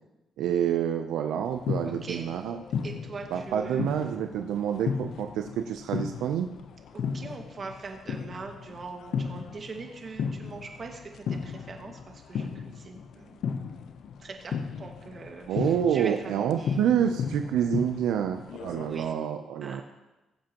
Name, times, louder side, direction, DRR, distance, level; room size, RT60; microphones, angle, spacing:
voice 1, 0.4-2.6 3.3-6.5 15.5-19.8, right 9 dB, 85° right, 6 dB, 0.6 m, -28 dB
sound 1, 1.5-19.1, left 6 dB, 70° left, 0.7 m, -35 dB
voice 2, 1.8-2.3 2.8-3.8 6.9-13.5 14.2-16.9 18.8-19.2 19.6-19.8, right 4 dB, 40° right, 2 dB, 1.8 m, -42 dB
21.0 x 7.7 x 3.0 m, 1.1 s
cardioid pair, 90°, 0 cm